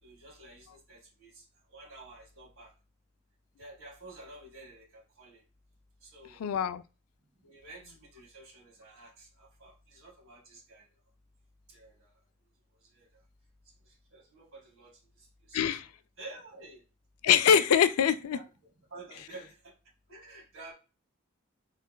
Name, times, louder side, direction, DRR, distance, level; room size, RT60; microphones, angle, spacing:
voice 1, 0.0-2.7 3.6-5.4 6.0-6.4 7.4-10.9 11.7-12.2 12.8-13.1 13.8-15.8 16.2-16.8 18.3-18.5 18.9-19.7 20.1-20.7, right 2 dB, 70° right, 1.8 m, -51 dB
voice 2, 6.4-6.8 15.5-15.9 17.2-18.4, left 8 dB, 85° left, 0.4 m, -23 dB
4.0 x 4.0 x 2.3 m
head